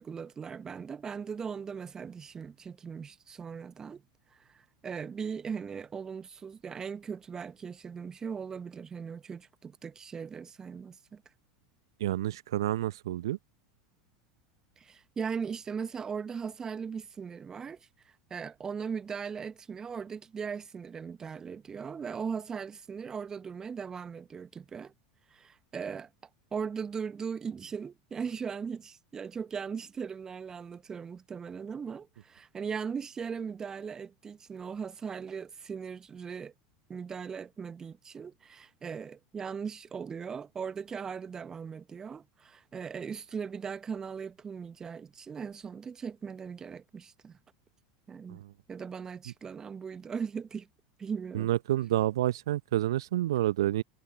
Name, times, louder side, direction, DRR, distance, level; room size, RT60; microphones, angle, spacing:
voice 1, 0.0-4.0 4.3-11.2 14.8-17.8 18.0-24.9 25.3-26.1 26.5-36.5 36.9-47.4 48.1-48.4 48.7-50.7 51.0-51.5, right 6 dB, 25° right, 0.7 m, -39 dB
voice 2, 12.0-13.4 48.3-48.5 51.3-53.8, right 14 dB, 70° right, 0.6 m, -29 dB
figure-of-eight pair, 80°, 3 cm